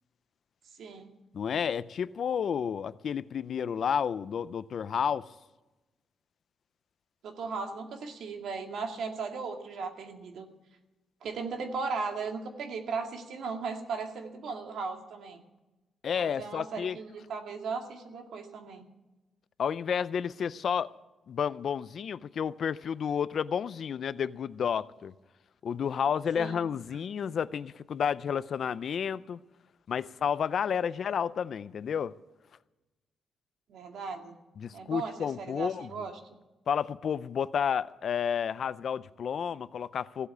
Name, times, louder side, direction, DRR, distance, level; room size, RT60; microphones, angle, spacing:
voice 1, 0.8-1.1 7.2-10.5 11.2-15.4 16.1-18.8 26.4-26.6 30.9-31.0 33.7-34.3 34.7-36.1, right 4 dB, 70° right, 2.1 m, -37 dB
voice 2, 1.3-5.3 16.0-17.0 19.6-20.9 21.3-25.1 25.6-29.4 29.9-32.1 34.6-36.0 36.7-40.3, left 7 dB, 50° left, 0.4 m, -31 dB
16.0 x 8.2 x 9.6 m
wide cardioid pair, 165°, 0 cm